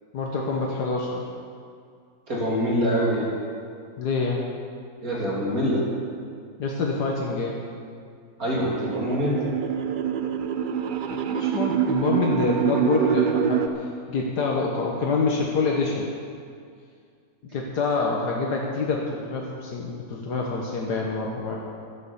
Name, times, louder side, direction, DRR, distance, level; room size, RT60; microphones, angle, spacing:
voice 1, 0.1-1.2 4.0-4.4 6.6-7.6 11.1-13.7 14.1-16.1 17.5-21.6, left 3 dB, 80° left, -1 dB, 1.8 m, -26 dB
voice 2, 2.3-3.3 5.0-5.8 8.4-9.5, equal, 60° right, -5 dB, 3.5 m, -25 dB
sound 1, 8.5-13.7, right 8 dB, 80° right, 0.4 m, -25 dB
12.5 x 9.5 x 7.1 m, 2.2 s
omnidirectional pair, 1.7 m